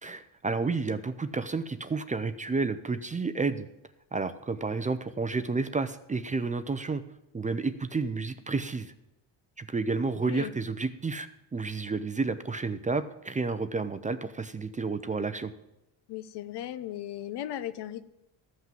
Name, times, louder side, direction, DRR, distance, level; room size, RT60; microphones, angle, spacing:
voice 1, 0.0-3.7 4.1-7.0 7.3-8.9 9.6-15.5, right 4 dB, 20° right, 11 dB, 0.5 m, -31 dB
voice 2, 16.1-18.0, left 12 dB, 65° left, 13 dB, 0.9 m, -36 dB
14.0 x 5.8 x 7.5 m, 0.89 s
cardioid pair, 115°, 43 cm